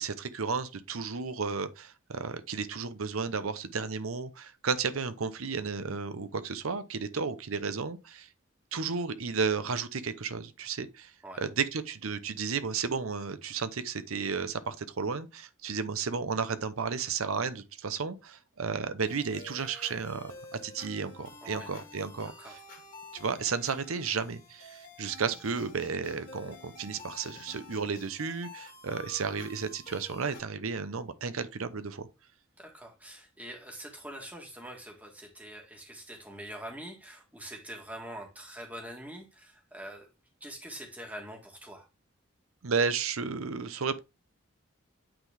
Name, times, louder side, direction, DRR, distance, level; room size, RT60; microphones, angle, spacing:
voice 1, 0.0-8.3 8.7-11.1 11.4-20.3 20.6-22.6 23.1-32.1 42.6-44.0, right 5 dB, 85° right, 0.7 m, -33 dB
sound 1, 19.1-30.4, left 2 dB, 40° left, 2.2 m, -49 dB
voice 2, 21.4-21.7 22.4-22.6 32.6-40.1 40.4-41.9, right 1 dB, 5° right, 1.5 m, -44 dB
8.8 x 3.9 x 3.4 m
head